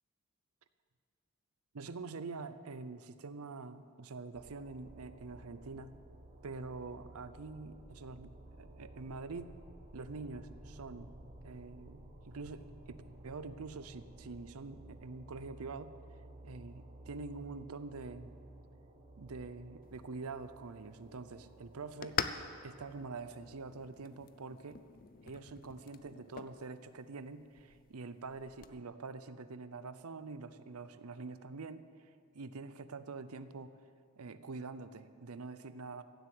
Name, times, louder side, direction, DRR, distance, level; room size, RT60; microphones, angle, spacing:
voice 1, 1.7-5.9 6.4-9.5 9.9-11.1 11.4-16.0 16.4-18.3 19.2-22.2 22.6-24.8 25.2-31.9 32.3-33.7 34.2-36.0, right 4 dB, 80° right, 13 dB, 0.6 m, -45 dB
sound 1, 4.3-23.7, right 1 dB, 35° right, 1.5 m, -55 dB
sound 2, 19.8-28.8, left 7 dB, 40° left, 0.5 m, -45 dB
15.5 x 8.0 x 7.9 m, 2.2 s
head